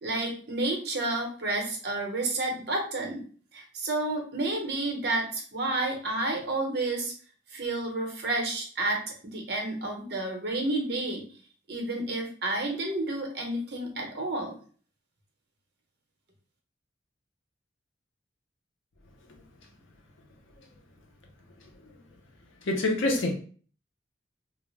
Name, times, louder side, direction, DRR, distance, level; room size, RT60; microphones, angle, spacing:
voice 1, 0.0-3.2 3.5-7.1 7.5-11.2 11.7-14.5, right 2 dB, 55° right, 1 dB, 0.7 m, -30 dB
voice 2, 21.6-22.0 22.6-23.4, left 2 dB, 90° left, 2 dB, 0.6 m, -28 dB
2.3 x 2.0 x 3.1 m, 0.43 s
head